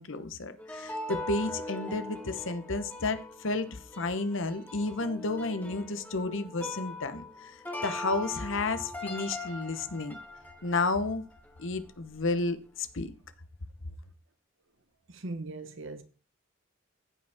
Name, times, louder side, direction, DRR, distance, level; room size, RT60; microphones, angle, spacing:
voice 1, 0.0-10.2 10.6-11.2 11.6-13.1, left 3 dB, 65° left, 0.9 m, -32 dB
sound 1, 0.6-11.9 12.1-12.3, left 1 dB, 10° left, 1.2 m, -41 dB
voice 2, 15.1-16.0, right 2 dB, 65° right, 1.0 m, -39 dB
15.0 x 5.3 x 3.6 m
head